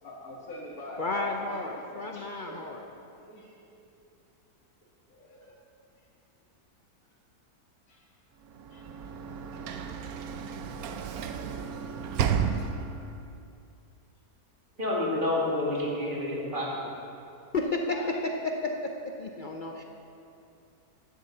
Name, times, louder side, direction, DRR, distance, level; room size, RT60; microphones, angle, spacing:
voice 1, 0.0-2.6 3.3-3.5 5.1-5.5 7.9-8.0 8.7-8.8 17.9-18.2, left 1 dB, 70° left, -8 dB, 2.2 m, -43 dB
voice 2, 1.0-2.8 17.5-19.8, left 2 dB, 45° left, 2 dB, 0.6 m, -32 dB
Sliding door / Slam, 8.5-13.2, right 7 dB, 75° right, 1.1 m, -32 dB
voice 3, 14.8-16.9, left 1 dB, 35° right, -5 dB, 2.6 m, -29 dB
9.8 x 7.7 x 8.0 m, 2.6 s
omnidirectional pair, 1.6 m